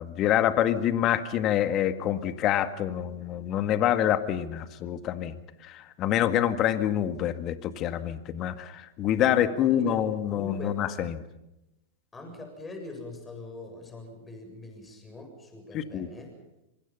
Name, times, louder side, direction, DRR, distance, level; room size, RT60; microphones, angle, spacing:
voice 1, 0.0-5.4 5.6-11.2 15.7-16.1, left 11 dB, 40° left, 11 dB, 1.8 m, -26 dB
voice 2, 9.2-10.8 12.1-16.3, left 2 dB, 15° left, 4 dB, 7.5 m, -42 dB
26.0 x 24.5 x 5.6 m, 0.91 s
hypercardioid pair, 105°, 0 cm